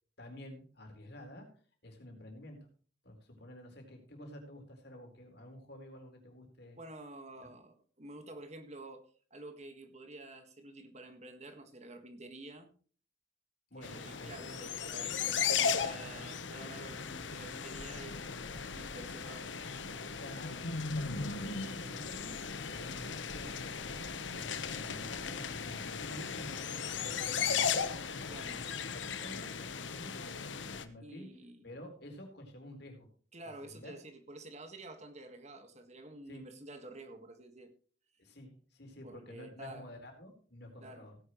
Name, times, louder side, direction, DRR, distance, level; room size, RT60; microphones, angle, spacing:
voice 1, 0.2-1.5 1.8-2.6 3.0-6.8 13.7-14.6 20.2-23.8 24.3-30.3 30.8-31.3 31.6-33.1 33.6-34.0 36.3-36.4 38.2-41.2, left 1 dB, 60° left, 3 dB, 4.1 m, -50 dB
voice 2, 6.8-12.7 13.8-18.3 18.7-19.5 28.2-28.6 31.0-31.7 33.3-37.7 39.0-39.9 40.8-41.1, right 2 dB, 35° right, 7 dB, 1.7 m, -49 dB
sound 1, 13.8-30.8, left 6 dB, 75° left, 1.1 m, -37 dB
17.0 x 10.5 x 3.1 m, 0.42 s
head